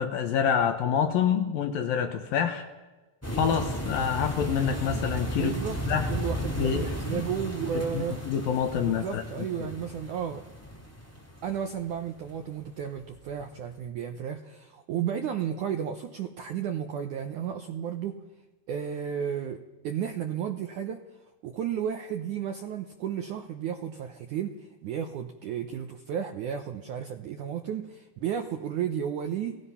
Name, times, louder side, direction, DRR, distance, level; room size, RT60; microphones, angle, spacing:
voice 1, 0.0-2.7 3.3-5.6 5.9-6.1 6.6-6.9 7.1-7.3 7.9-9.7, left 8 dB, 65° left, 6 dB, 2.5 m, -27 dB
sound 1, 3.2-12.3 12.8-13.0 13.3-13.4, equal, 5° left, 1.7 m, -34 dB
voice 2, 5.4-5.8 6.1-8.2 8.8-10.4 11.4-18.2 18.7-21.0 21.4-29.6, right 8 dB, 75° right, 5 dB, 1.8 m, -33 dB
29.5 x 18.5 x 5.7 m, 1.2 s
omnidirectional pair, 4.9 m